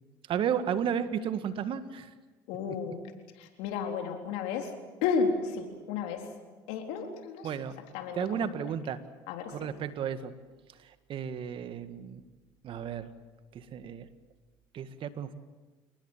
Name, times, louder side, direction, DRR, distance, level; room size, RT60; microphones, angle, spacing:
voice 1, 0.3-2.1 7.4-7.8 8.1-9.0 9.5-10.3 10.8-12.2 12.6-13.1 13.5-14.1 14.7-15.3, right 8 dB, 50° right, 11 dB, 1.9 m, -33 dB
voice 2, 2.5-3.0 3.4-4.7 5.0-6.3 6.7-7.5 7.9-8.5 9.3-9.6, left 5 dB, 75° left, 4 dB, 4.0 m, -32 dB
29.0 x 19.5 x 7.5 m, 1.3 s
supercardioid pair, 85°, 11 cm